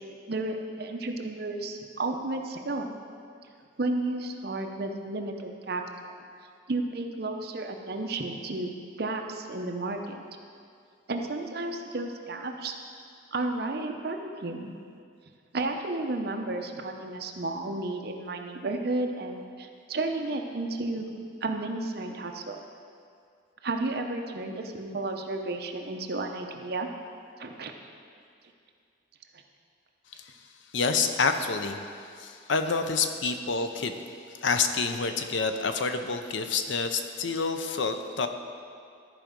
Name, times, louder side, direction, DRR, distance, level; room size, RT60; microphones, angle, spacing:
voice 1, 0.3-2.9 3.8-6.1 6.7-8.7 9.0-10.2 11.1-12.7 13.3-14.7 15.5-21.1 21.4-22.6 23.6-26.9 27.4-27.7, right 2 dB, 55° right, 3 dB, 0.7 m, -32 dB
voice 2, 30.7-31.8 32.1-34.0 34.4-38.3, left 4 dB, 80° left, 7 dB, 0.6 m, -28 dB
13.0 x 5.0 x 5.2 m, 2.3 s
head